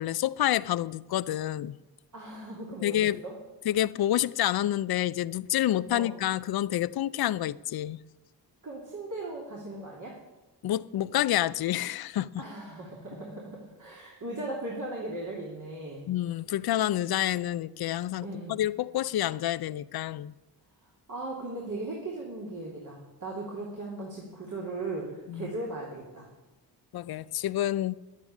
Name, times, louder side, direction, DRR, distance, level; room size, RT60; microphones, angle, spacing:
voice 1, 0.0-1.8 2.8-3.2 3.7-8.0 10.6-12.4 16.1-20.3 25.3-25.5 26.9-27.9, left 13 dB, 60° left, 0.5 m, -28 dB
voice 2, 2.1-3.3 5.9-6.1 8.6-10.2 12.4-16.1 18.2-18.6 21.1-26.3, right 2 dB, 45° right, 3.1 m, -38 dB
11.0 x 9.1 x 8.4 m
cardioid pair, 75°, 41 cm